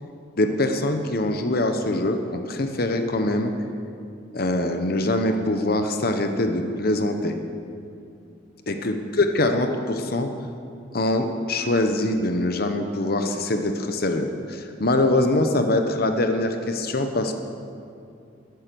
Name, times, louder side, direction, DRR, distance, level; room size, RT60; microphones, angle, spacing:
voice 1, 0.4-3.5 4.3-7.4 8.7-10.3 10.9-17.4, left 2 dB, 55° left, 6 dB, 0.9 m, -23 dB
14.0 x 10.5 x 6.9 m, 2.5 s
head